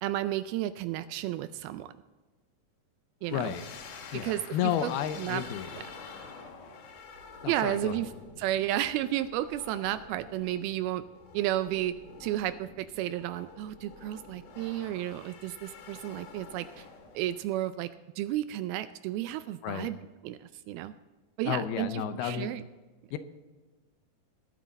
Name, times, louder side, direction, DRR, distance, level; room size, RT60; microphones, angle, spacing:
voice 1, 0.0-1.9 3.2-3.5 4.1-4.9 5.2-5.4 5.7-5.8 7.5-8.1 8.4-11.0 11.3-11.9 12.2-16.9 17.1-17.9 18.2-20.0 20.2-20.9 21.4-22.6, right 13 dB, 80° right, 12 dB, 2.3 m, -32 dB
sound 1, 3.2-17.4, left 5 dB, 60° left, 2.7 m, -48 dB
voice 2, 3.3-3.6 4.1-5.8 7.4-8.1 19.6-19.9 21.5-22.5 23.1-23.2, left 10 dB, 80° left, 10 dB, 2.6 m, -32 dB
21.5 x 9.0 x 4.1 m, 1.3 s
omnidirectional pair, 4.6 m